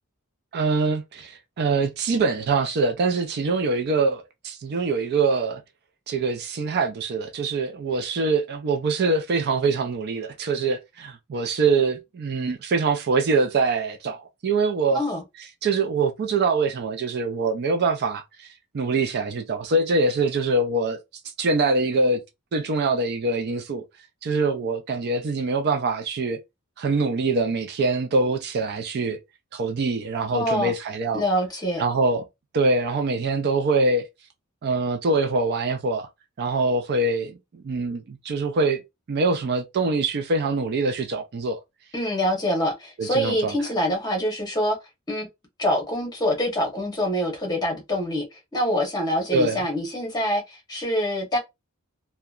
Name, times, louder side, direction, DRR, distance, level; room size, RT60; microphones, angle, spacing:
voice 1, 0.5-5.6 6.1-15.0 15.6-21.0 21.4-22.2 22.5-23.8 24.2-26.4 26.8-29.2 29.5-31.2 31.8-32.3 32.5-34.1 34.6-36.1 36.4-38.8 39.1-41.6 43.0-43.5 49.3-49.7, right 3 dB, 45° right, 0.4 m, -24 dB
voice 2, 14.9-15.2 30.3-30.7 31.1-31.8 41.9-44.8 45.1-45.3 45.6-51.4, equal, 20° left, 1.0 m, -25 dB
2.8 x 2.2 x 2.3 m
head